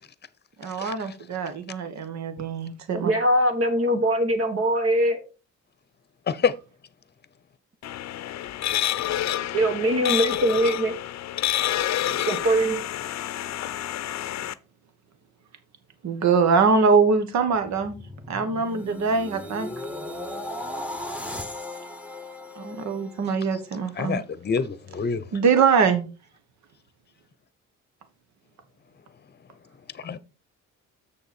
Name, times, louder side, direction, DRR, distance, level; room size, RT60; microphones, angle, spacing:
voice 1, 0.6-3.1 16.0-17.9 18.3-19.7 22.6-24.2 25.3-26.1, right 5 dB, 65° right, 1.4 m, -23 dB
voice 2, 2.9-5.2 9.5-10.9 12.3-12.8, right 1 dB, 50° right, 1.5 m, -22 dB
sound 1, 7.8-14.5, left 12 dB, 65° left, 0.6 m, -28 dB
sound 2, 17.4-23.7 24.1-24.4, left 1 dB, 5° right, 1.3 m, -37 dB
voice 3, 24.0-25.2 30.0-30.2, left 6 dB, 35° left, 0.9 m, -26 dB
7.2 x 6.8 x 4.3 m
cardioid pair, 90°, 30 cm